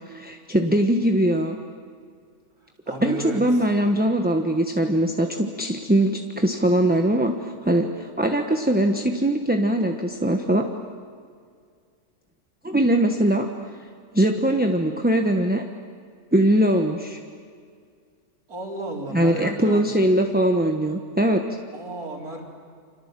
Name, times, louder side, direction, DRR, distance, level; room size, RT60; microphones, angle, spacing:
voice 1, 0.1-1.6 3.0-10.6 12.6-13.5 14.1-15.6 16.3-17.2 19.1-21.4, right 1 dB, 5° right, 4 dB, 1.1 m, -21 dB
voice 2, 2.9-3.4 18.5-19.9 21.7-22.4, right 2 dB, 75° right, -1 dB, 4.9 m, -33 dB
29.5 x 26.5 x 7.6 m, 2.1 s
omnidirectional pair, 1.6 m